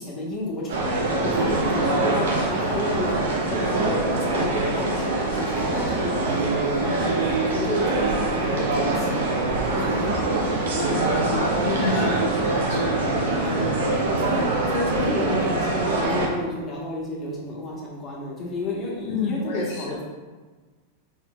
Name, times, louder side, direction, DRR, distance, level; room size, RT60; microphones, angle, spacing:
voice 1, 0.0-3.8 4.1-7.2 7.5-10.1 11.5-12.2 13.4-20.0, left 2 dB, 30° left, -3 dB, 1.3 m, -31 dB
sound 1, 0.7-16.3, right 2 dB, 80° right, 0.8 m, -24 dB
voice 2, 10.8-13.0 19.1-20.0, left 3 dB, 70° left, -2 dB, 0.5 m, -30 dB
3.9 x 3.9 x 2.4 m, 1.4 s
hypercardioid pair, 110°, 0 cm